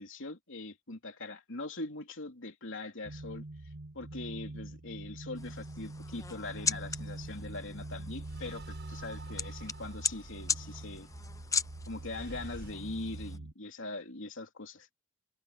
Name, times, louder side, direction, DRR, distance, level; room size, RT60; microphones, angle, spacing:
voice 1, 0.0-3.4 3.9-11.1 11.9-14.9, left 2 dB, 65° left, 3.4 m, -42 dB
sound 1, 3.0-13.5, right 2 dB, 75° right, 1.4 m, -44 dB
sound 2, 5.3-13.4, left 5 dB, 15° left, 0.7 m, -39 dB
sound 3, 6.8-12.7, right 2 dB, 55° right, 6.8 m, -52 dB
head